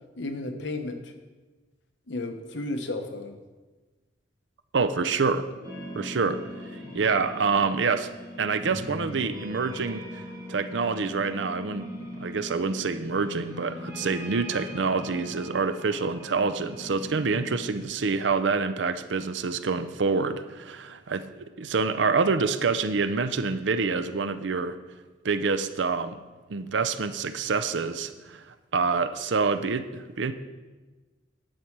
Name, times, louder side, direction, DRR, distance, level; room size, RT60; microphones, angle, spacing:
voice 1, 0.2-1.1 2.1-3.4, left 2 dB, 70° left, 6 dB, 1.0 m, -33 dB
voice 2, 4.7-5.5 5.9-6.4 6.9-8.1 8.4-10.0 10.5-11.9 12.2-24.8 25.2-26.2 26.5-28.4 28.7-30.3, right 4 dB, 70° right, 11 dB, 0.6 m, -26 dB
sound 1, 5.6-17.8, left 1 dB, 20° right, 2.6 m, -40 dB
10.0 x 7.3 x 4.6 m, 1.3 s
head